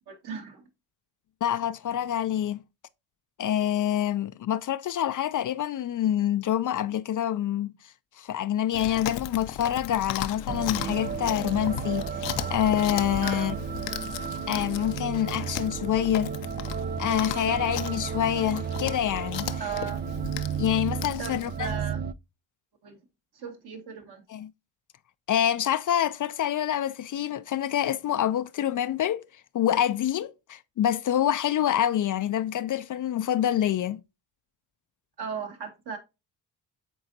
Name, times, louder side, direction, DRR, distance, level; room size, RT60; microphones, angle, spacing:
voice 1, 0.1-0.6 13.2-13.6 19.6-20.0 21.2-22.0 22.8-23.0 23.3-24.2 35.2-36.0, right 6 dB, 55° right, 2.2 m, -36 dB
voice 2, 1.4-2.6 3.4-7.7 8.2-13.5 14.5-16.3 17.0-19.5 20.6-21.7 24.3-24.5 25.3-29.2 29.5-34.0, left 11 dB, 45° left, 0.5 m, -26 dB
Chewing mastication, 8.7-21.8, left 11 dB, 75° left, 0.8 m, -37 dB
sound 1, 10.5-22.1, right 6 dB, 25° right, 0.3 m, -33 dB
9.0 x 3.8 x 2.7 m
supercardioid pair, 65°, 45 cm